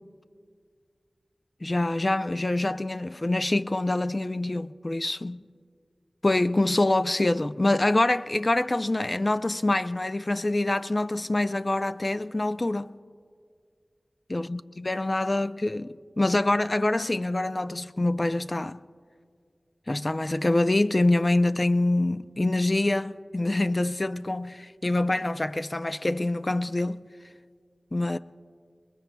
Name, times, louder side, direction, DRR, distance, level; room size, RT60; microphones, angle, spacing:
voice 1, 1.6-5.5 6.2-12.9 14.3-18.8 19.9-27.1 27.9-28.2, left 2 dB, 40° left, 0.4 m, -25 dB
26.5 x 21.5 x 2.2 m
wide cardioid pair, 60°, 0 cm